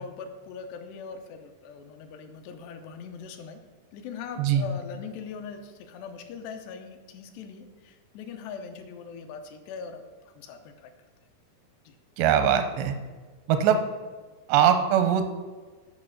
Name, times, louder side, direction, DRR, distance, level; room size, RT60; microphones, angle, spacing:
voice 1, 0.0-3.6 3.9-10.9 11.9-12.0, left 5 dB, 85° left, 6 dB, 2.9 m, -41 dB
voice 2, 12.2-12.9 13.5-13.8 14.5-15.3, right 8 dB, 90° right, 8 dB, 2.9 m, -21 dB
9.7 x 5.0 x 6.3 m, 1.4 s
omnidirectional pair, 4.7 m